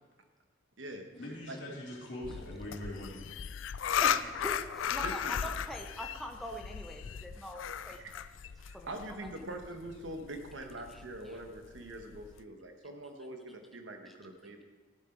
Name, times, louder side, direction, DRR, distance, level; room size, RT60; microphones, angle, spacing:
voice 1, 1.1-3.2, left 1 dB, 70° left, -4 dB, 3.0 m, -42 dB
sound 1, 2.2-12.4, left 8 dB, 85° left, 0.4 m, -36 dB
voice 2, 4.0-8.2 8.7-8.9 10.9-11.4 14.1-14.2, equal, ahead, 3 dB, 0.6 m, -43 dB
voice 3, 5.0-5.4 7.9-8.1 8.6-14.6, right 1 dB, 75° right, 5 dB, 1.2 m, -43 dB
13.5 x 7.7 x 4.5 m, 1.3 s
head